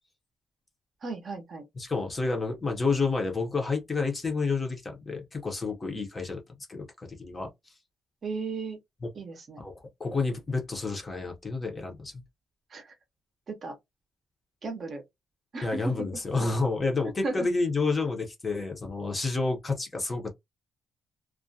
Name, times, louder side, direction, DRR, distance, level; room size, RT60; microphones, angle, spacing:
voice 1, 1.0-1.6 8.2-8.8 9.1-9.6 12.7-13.0 13.5-13.8 14.6-15.0 15.5-16.1 17.2-17.5, right 3 dB, 35° right, 0.6 m, -35 dB
voice 2, 1.8-6.4 6.7-7.5 9.6-12.2 15.6-20.3, left 3 dB, 20° left, 0.6 m, -29 dB
2.3 x 2.1 x 2.6 m
cardioid pair, 170°, 0 cm